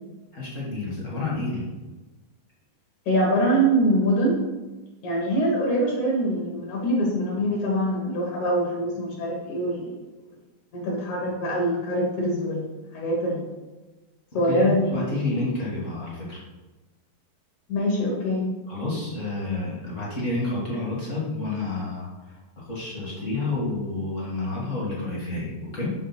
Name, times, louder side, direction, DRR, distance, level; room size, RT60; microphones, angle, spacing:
voice 1, 0.3-1.6 14.4-16.4 18.7-25.9, left 2 dB, 35° left, -6 dB, 1.3 m, -29 dB
voice 2, 3.1-4.4 5.0-10.0 10.7-12.7 12.9-13.5 14.3-14.9 17.7-18.5, right 1 dB, 60° left, -2 dB, 2.6 m, -24 dB
7.7 x 3.4 x 5.8 m, 1.2 s
omnidirectional pair, 4.0 m